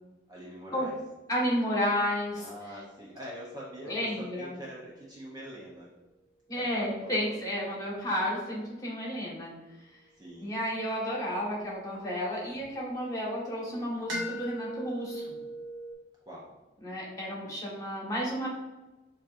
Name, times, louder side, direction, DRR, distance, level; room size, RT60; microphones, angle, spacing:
voice 1, 0.3-1.0 2.4-5.9 6.5-8.1 10.2-10.5 16.3-16.5, equal, 20° right, -4 dB, 0.6 m, -45 dB
voice 2, 1.3-2.5 3.8-4.6 6.5-9.5 10.4-15.3 16.8-18.5, equal, 20° left, -5 dB, 1.4 m, -32 dB
sound 1, 1.6-5.9 10.2-12.7 14.1-15.9, right 1 dB, 75° right, 1.2 m, -42 dB
6.9 x 2.8 x 2.5 m, 1.1 s
head